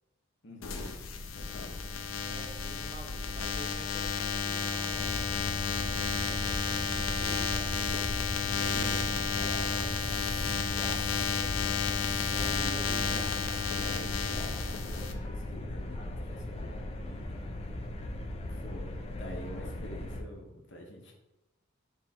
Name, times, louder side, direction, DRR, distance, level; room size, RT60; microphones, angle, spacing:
voice 1, 0.4-1.0 1.3-1.8 8.6-9.4 12.4-16.8 18.5-21.1, left 1 dB, 65° left, 1 dB, 0.9 m, -46 dB
sound 1, 0.6-15.1, left 5 dB, 85° left, 0.5 m, -32 dB
voice 2, 2.2-5.3 6.1-7.8 8.4-9.0 9.3-13.3 17.0-17.4, right 2 dB, 25° right, 1 dB, 0.6 m, -49 dB
sound 2, 4.9-20.2, left 1 dB, 30° left, 0.4 m, -38 dB
3.5 x 3.2 x 4.2 m, 0.95 s
head